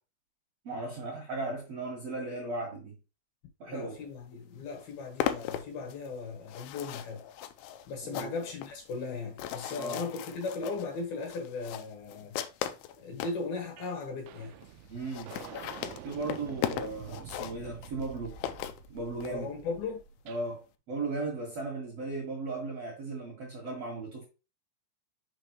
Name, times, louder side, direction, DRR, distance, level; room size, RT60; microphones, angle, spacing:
voice 1, 0.6-3.0 3.6-3.9 8.0-8.3 9.8-10.0 14.9-15.4 16.0-18.4 18.9-19.5 20.3-24.2, right 2 dB, 55° right, 1.8 m, -36 dB
voice 2, 3.7-7.2 7.9-12.4 13.0-14.5 19.2-20.0, left 4 dB, 65° left, 2.8 m, -37 dB
sound 1, 4.2-4.3 4.6-13.4 14.0-14.1 14.3-14.4 14.6-14.7 15.0-19.3, left 11 dB, 85° left, 2.4 m, -38 dB
sound 2, 13.8-14.0 14.3-20.5, right 9 dB, 85° right, 2.3 m, -48 dB
6.6 x 5.3 x 3.0 m
omnidirectional pair, 5.2 m